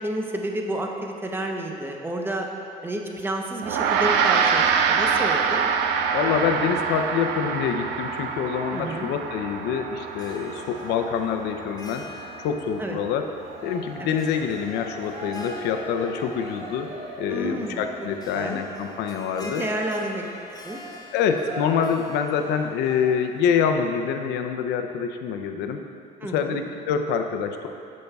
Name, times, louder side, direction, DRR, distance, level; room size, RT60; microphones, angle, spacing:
voice 1, 0.0-2.5 2.8-5.6 8.7-9.1 12.8-13.0 14.0-14.2 17.3-17.8 18.3-18.6 19.3-20.2 20.6-20.8 26.2-26.6, right 1 dB, 15° right, 1 dB, 0.8 m, -30 dB
Gong, 3.6-13.2, right 6 dB, 85° right, 0.5 m, -26 dB
voice 2, 6.1-12.1 12.4-13.2 13.6-19.6 21.1-25.8 26.3-27.7, left 7 dB, 85° left, 6 dB, 0.6 m, -26 dB
Harp, 10.1-23.8, left 2 dB, 20° left, 0.7 m, -45 dB
Cheering, 13.3-23.4, right 1 dB, 40° right, 1.3 m, -41 dB
13.5 x 5.3 x 2.3 m, 2.6 s
cardioid pair, 110°, 17 cm